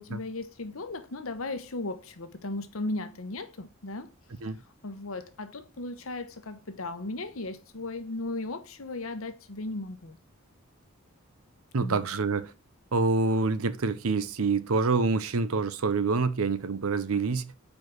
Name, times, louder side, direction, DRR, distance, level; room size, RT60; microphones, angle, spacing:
voice 1, 0.0-4.1 4.8-10.2 11.8-12.1, left 2 dB, 75° left, 1.0 m, -36 dB
voice 2, 11.7-12.5 12.9-17.6, right 4 dB, 85° right, 0.7 m, -26 dB
5.3 x 4.7 x 6.0 m
head